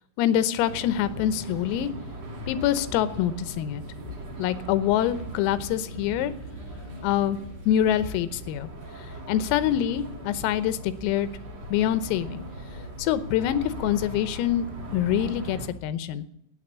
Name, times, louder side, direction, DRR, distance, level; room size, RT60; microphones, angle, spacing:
voice 1, 0.2-1.9 2.5-3.8 4.4-6.3 7.0-7.4 7.7-8.7 9.3-11.3 11.7-12.4 13.0-14.7 14.9-16.3, left 11 dB, 90° left, 13 dB, 3.6 m, -25 dB
sound 1, 0.7-15.7, right 1 dB, 45° right, 2.5 m, -39 dB
13.0 x 9.7 x 8.6 m, 0.72 s
omnidirectional pair, 5.9 m